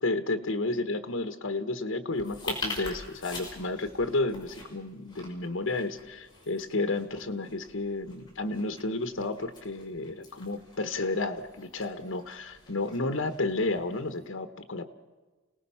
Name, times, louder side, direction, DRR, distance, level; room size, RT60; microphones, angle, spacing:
voice 1, 0.0-14.9, left 2 dB, 75° left, 8 dB, 1.3 m, -31 dB
sound 1, 2.1-14.2, left 2 dB, 20° left, 5.7 m, -44 dB
29.0 x 18.5 x 5.7 m, 1.3 s
head